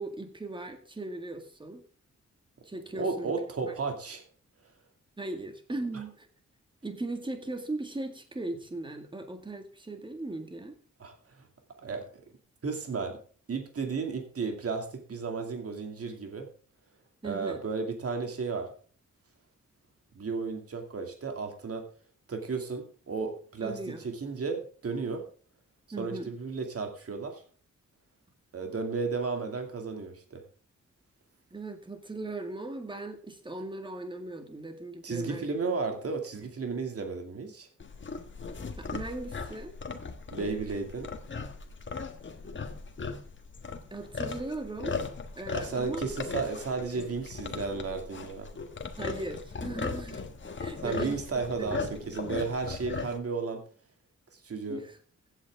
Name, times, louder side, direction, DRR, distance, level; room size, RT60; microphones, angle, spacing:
voice 1, 0.0-1.8 2.6-3.3 3.7-3.8 5.2-6.3 6.8-10.7 17.2-17.6 23.6-24.1 25.9-26.3 31.5-35.5 38.8-39.8 43.9-45.0 45.4-46.0 49.0-50.2 50.6-52.1 54.7-55.0, right 2 dB, 15° right, 6 dB, 2.0 m, -38 dB
voice 2, 2.9-4.2 11.0-11.5 11.8-12.1 12.6-13.2 13.5-16.5 17.2-18.7 20.1-21.8 22.3-25.2 26.0-27.4 28.5-30.4 35.0-37.7 40.3-41.1 45.5-48.5 50.8-53.6 54.3-54.8, right 4 dB, 50° right, 4 dB, 2.5 m, -33 dB
sound 1, 37.8-53.2, left 4 dB, 40° left, 1.5 m, -38 dB
15.5 x 8.8 x 3.6 m, 0.43 s
wide cardioid pair, 145°, 29 cm